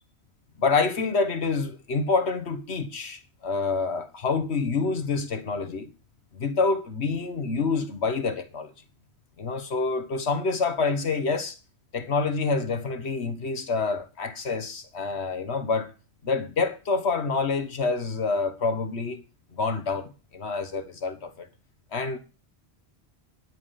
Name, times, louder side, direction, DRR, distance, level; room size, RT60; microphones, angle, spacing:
voice 1, 0.6-5.9 6.3-8.7 9.4-11.6 11.9-15.9 16.2-19.2 19.5-21.5 21.9-22.2, left 4 dB, 80° left, 1.7 m, -27 dB
11.0 x 8.5 x 5.8 m
omnidirectional pair, 1.1 m